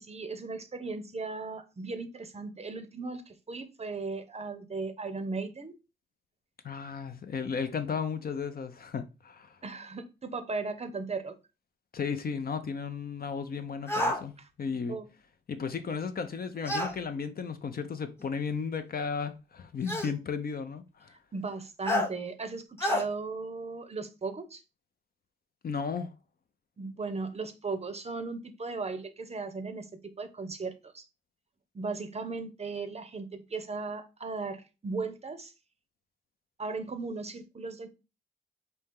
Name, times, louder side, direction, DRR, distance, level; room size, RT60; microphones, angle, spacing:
voice 1, 0.0-5.7 9.6-11.3 14.9-15.1 21.3-24.6 26.8-31.1 31.7-35.5 36.6-37.9, right 4 dB, 35° right, 0.6 m, -37 dB
voice 2, 6.6-9.6 11.9-15.0 15.5-21.1 25.6-26.1, left 6 dB, 50° left, 0.6 m, -34 dB
sound 1, 13.9-14.2 16.7-16.9 18.2-18.3 19.9-20.1 21.9-22.1 22.8-23.0, left 1 dB, 10° left, 0.7 m, -28 dB
4.4 x 2.8 x 3.6 m
wide cardioid pair, 100°, 20 cm